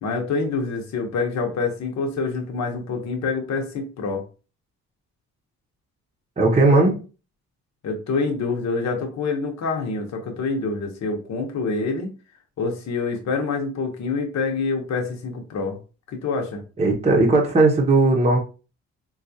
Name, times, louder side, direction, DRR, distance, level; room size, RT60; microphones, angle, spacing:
voice 1, 0.0-4.2 7.8-12.1 12.6-15.8 16.1-16.6, left 4 dB, 60° left, 1.0 m, -26 dB
voice 2, 6.4-7.0 16.8-18.4, right 2 dB, 20° right, 0.8 m, -17 dB
3.9 x 2.4 x 2.7 m
cardioid pair, 90°, 30 cm